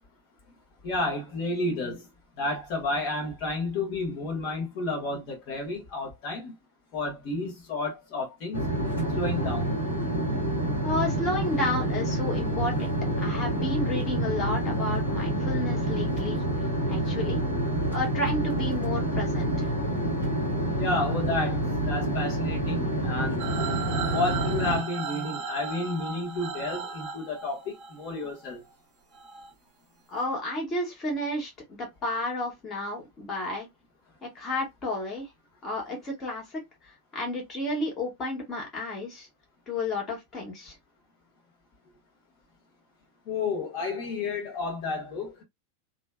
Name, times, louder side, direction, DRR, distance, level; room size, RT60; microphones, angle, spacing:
voice 1, 0.8-2.0 2.4-6.5 6.9-8.7 9.1-9.7 20.8-23.5 24.1-28.6 43.3-45.4, left 2 dB, 45° left, 1.4 m, -31 dB
sound 1, 8.5-24.8, right 1 dB, 80° left, 1.5 m, -28 dB
voice 2, 10.8-16.4 16.9-17.4 17.9-19.7 30.1-33.7 34.2-35.3 35.6-39.3 39.7-40.8, left 1 dB, 25° left, 1.6 m, -32 dB
sound 2, 23.4-28.5 29.1-29.5, right 6 dB, 40° right, 0.7 m, -36 dB
3.3 x 2.8 x 2.2 m
figure-of-eight pair, 90°, 0 cm